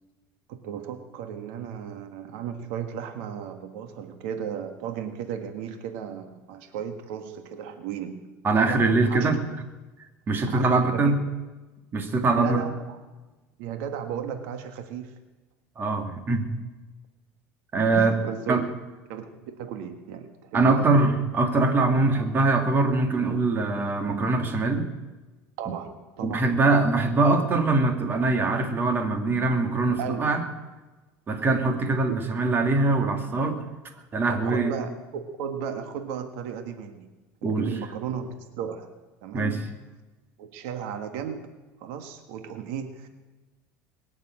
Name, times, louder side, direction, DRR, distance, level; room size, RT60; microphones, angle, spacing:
voice 1, 0.5-8.3 8.7-9.3 10.5-11.1 12.4-13.0 13.6-15.2 17.9-18.7 19.1-21.2 25.6-26.4 30.0-30.3 32.1-32.2 34.3-37.1 37.4-38.9 39.2-39.7 40.4-41.5 41.8-43.1, right 8 dB, 80° right, 7 dB, 1.6 m, -35 dB
voice 2, 8.4-9.4 10.3-11.2 11.9-12.6 15.8-16.4 17.7-18.1 18.5-18.6 20.5-24.9 26.2-30.4 31.3-33.6 34.1-34.7 37.4-37.7 39.3-39.6, right 3 dB, 30° right, 6 dB, 2.4 m, -23 dB
22.0 x 7.3 x 8.9 m, 1.2 s
supercardioid pair, 120°, 7 cm